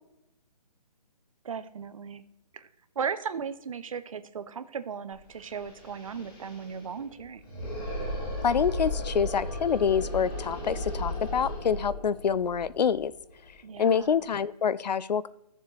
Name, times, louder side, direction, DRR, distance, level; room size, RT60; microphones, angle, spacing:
voice 1, 1.4-2.2 2.5-2.7 3.0-7.4 13.6-14.2, right 6 dB, 55° right, 12 dB, 0.8 m, -36 dB
sound 1, 5.1-5.2 5.4-14.2, left 1 dB, 35° left, 2.5 m, -36 dB
voice 2, 8.4-13.1 13.8-15.3, left 7 dB, 85° left, 18 dB, 0.6 m, -26 dB
14.0 x 7.2 x 3.2 m, 0.85 s
hypercardioid pair, 170°, 21 cm